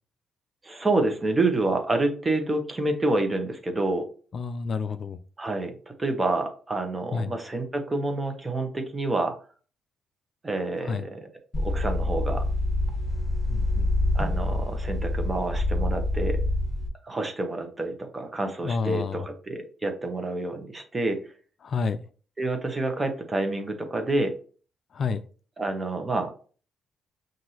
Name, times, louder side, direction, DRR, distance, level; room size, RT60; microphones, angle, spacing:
voice 1, 0.6-4.1 5.4-9.3 10.4-11.2 11.6-12.4 14.1-16.4 17.0-21.2 22.4-24.3 25.6-26.3, right 2 dB, 20° right, 1.0 m, -28 dB
voice 2, 4.3-5.2 7.1-7.4 10.9-11.0 13.5-13.9 18.6-19.3 21.6-22.0 24.9-25.2, left 5 dB, 50° left, 0.3 m, -29 dB
sound 1, 11.5-16.9, left 1 dB, 25° left, 1.4 m, -26 dB
5.9 x 2.6 x 2.8 m
cardioid pair, 90°, 0 cm